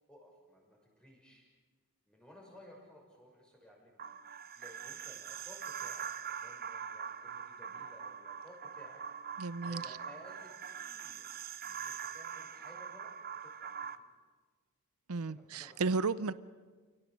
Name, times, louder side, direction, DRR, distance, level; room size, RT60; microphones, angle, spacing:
voice 1, 0.1-1.4 2.1-4.1 4.5-9.0 9.4-11.2 11.6-13.9 15.2-16.1, equal, 5° left, -1 dB, 6.4 m, -57 dB
sound 1, 4.0-14.0, right 7 dB, 45° right, 0.8 m, -43 dB
voice 2, 9.4-9.8 15.1-16.3, right 4 dB, 75° right, 16 dB, 0.6 m, -33 dB
29.5 x 17.5 x 7.7 m, 1.4 s
head